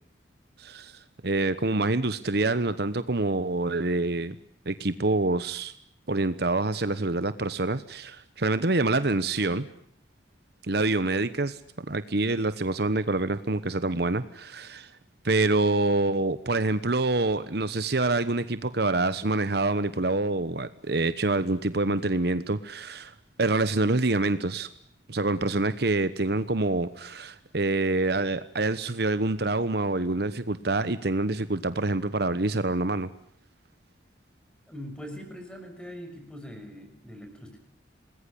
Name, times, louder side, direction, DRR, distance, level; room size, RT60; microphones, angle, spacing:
voice 1, 0.6-4.3 4.7-5.7 6.1-9.7 10.7-14.9 15.2-23.1 23.4-24.7 25.1-33.1, right 2 dB, 60° right, 13 dB, 1.1 m, -26 dB
voice 2, 34.7-37.6, equal, 5° left, 5 dB, 6.1 m, -42 dB
27.5 x 20.5 x 10.0 m, 0.67 s
head